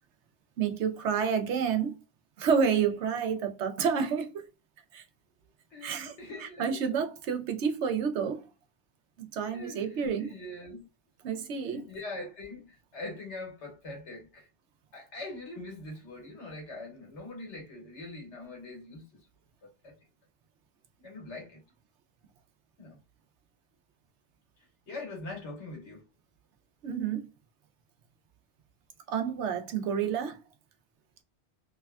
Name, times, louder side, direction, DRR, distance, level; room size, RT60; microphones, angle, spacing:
voice 1, 0.6-1.9 2.4-4.5 4.9-5.0 5.8-6.1 6.4-8.5 9.2-10.3 11.2-11.9 26.8-27.3 29.1-30.4, right 7 dB, 80° right, 0.9 m, -29 dB
voice 2, 5.7-6.9 9.5-10.9 11.2-14.5 14.9-19.2 19.6-19.9 21.0-21.6 22.8-23.0 24.9-26.0, left 2 dB, 85° left, 1.6 m, -43 dB
3.3 x 2.2 x 2.2 m
omnidirectional pair, 1.2 m